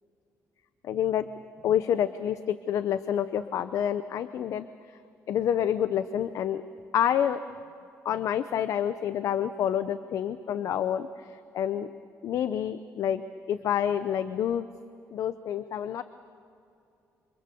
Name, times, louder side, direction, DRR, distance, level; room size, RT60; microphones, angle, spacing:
voice 1, 0.8-1.3 1.6-4.7 5.3-6.6 6.9-7.4 8.0-11.9 12.2-13.2 13.5-14.7 15.1-16.0, left 9 dB, 60° left, 12 dB, 0.7 m, -28 dB
28.5 x 26.0 x 6.9 m, 2.6 s
cardioid pair, 170°, 6 cm